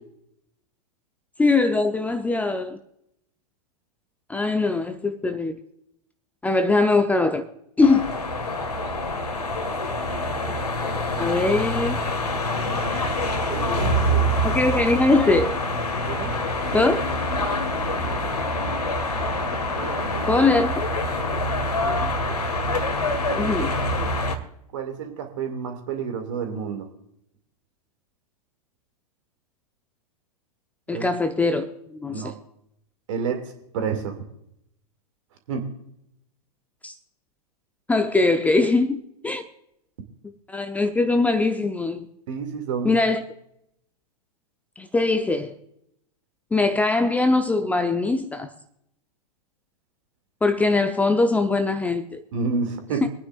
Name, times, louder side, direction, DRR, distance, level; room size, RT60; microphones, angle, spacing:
voice 1, 1.4-2.8 4.3-5.5 6.4-7.4 7.8-8.1 11.2-12.0 14.4-15.5 16.7-17.0 20.3-20.7 23.4-23.7 30.9-32.3 36.8-36.9 37.9-39.4 40.5-42.1 42.8-43.2 44.8-45.5 46.5-48.5 50.4-52.2 53.0-53.1, left 3 dB, 10° left, 0.7 m, -21 dB
sound 1, 7.8-24.4, left 1 dB, 80° left, 1.8 m, -25 dB
voice 2, 10.1-11.5 12.5-12.8 13.5-14.5 16.0-16.3 19.7-20.4 20.9-21.3 21.8-22.3 23.3-24.1 24.7-26.9 30.9-31.1 32.1-32.3 33.1-33.4 33.7-34.2 35.5-35.7 42.3-42.9 52.3-53.0, right 5 dB, 55° right, 2.3 m, -31 dB
24.5 x 9.6 x 2.5 m
figure-of-eight pair, 100°, 20 cm